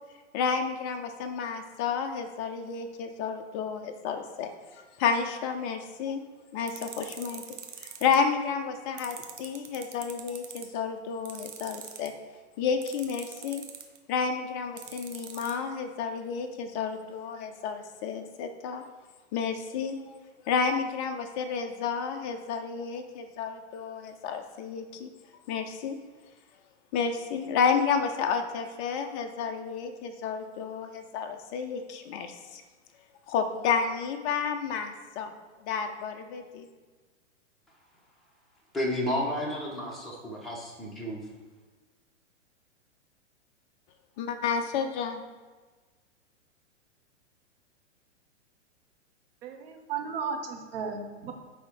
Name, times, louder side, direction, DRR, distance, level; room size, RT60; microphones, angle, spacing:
voice 1, 0.3-4.5 5.0-6.3 6.5-7.4 7.8-12.1 12.6-13.6 14.1-18.8 19.3-20.2 20.5-25.1 25.5-26.0 26.9-32.6 33.3-35.3 35.6-36.7 44.3-45.2, left 6 dB, 20° left, 6 dB, 0.3 m, -31 dB
sound 1, 6.7-8.2 9.0-10.6 11.2-12.1 12.8-14.0 14.8-15.5, right 9 dB, 80° right, 1.2 m, -42 dB
voice 2, 38.7-41.2, left 1 dB, ahead, -5 dB, 1.4 m, -31 dB
voice 3, 49.4-51.3, right 6 dB, 50° right, 3 dB, 1.3 m, -35 dB
8.6 x 3.5 x 4.8 m, 1.3 s
hypercardioid pair, 130°, 37 cm